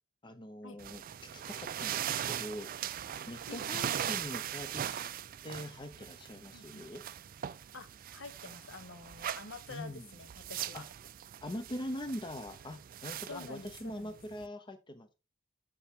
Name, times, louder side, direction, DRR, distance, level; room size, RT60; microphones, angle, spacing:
voice 1, 0.2-1.0 1.3-2.7 3.3-5.0 5.4-7.0 9.7-10.1 10.7-10.8 11.4-15.1, left 1 dB, 20° left, 0.6 m, -43 dB
sound 1, 0.8-14.5, right 10 dB, 40° right, 0.4 m, -40 dB
voice 2, 3.5-4.0 6.5-6.9 7.7-10.9 13.3-14.2, left 3 dB, 60° left, 1.0 m, -48 dB
6.9 x 6.7 x 3.6 m
head